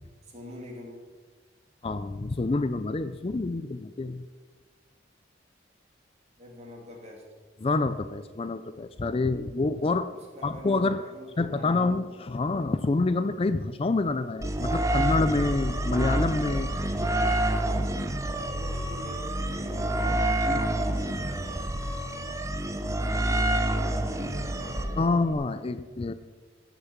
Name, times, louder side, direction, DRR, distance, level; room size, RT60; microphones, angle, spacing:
voice 1, 0.2-1.0 6.4-7.2 9.3-9.5 10.1-11.9 16.9-18.1 18.5-21.7 23.2-25.2, equal, 35° right, -1 dB, 2.9 m, -45 dB
voice 2, 1.8-4.2 7.6-10.1 10.4-11.0 11.4-16.7 20.5-20.7 25.0-26.1, left 3 dB, 30° left, 12 dB, 0.4 m, -27 dB
sound 1, 14.4-25.3, right 1 dB, 15° right, 0.7 m, -28 dB
15.0 x 6.7 x 7.3 m, 1.5 s
head